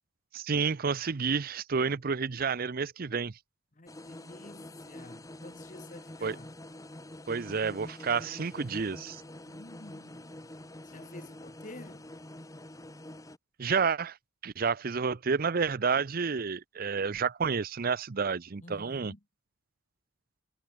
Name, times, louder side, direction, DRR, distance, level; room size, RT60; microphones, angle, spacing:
voice 1, 0.3-3.3 6.2-6.3 7.3-9.2 13.6-14.2 14.4-19.1, right 5 dB, 45° right, 0.6 m, -30 dB
voice 2, 3.7-6.6 9.4-10.5 10.8-12.1 18.6-19.2, left 2 dB, 35° left, 1.5 m, -50 dB
sound 1, 3.9-13.4, left 1 dB, 15° left, 1.5 m, -46 dB
head